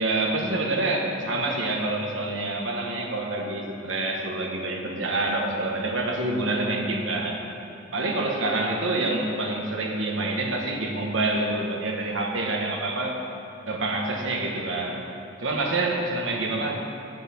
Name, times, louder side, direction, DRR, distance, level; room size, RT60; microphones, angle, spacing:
voice 1, 0.0-7.4 7.9-13.2 13.7-15.1 15.4-16.8, right 2 dB, 80° right, 1 dB, 1.3 m, -27 dB
8.1 x 6.6 x 7.6 m, 2.7 s
head